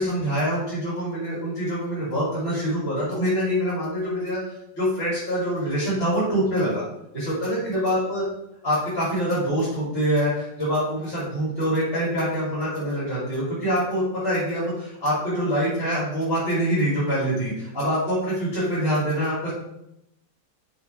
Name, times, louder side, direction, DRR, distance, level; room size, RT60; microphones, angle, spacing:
voice 1, 0.0-6.8 7.1-8.2 8.6-19.5, equal, 30° left, -10 dB, 2.5 m, -25 dB
5.7 x 3.8 x 4.2 m, 0.82 s
omnidirectional pair, 2.0 m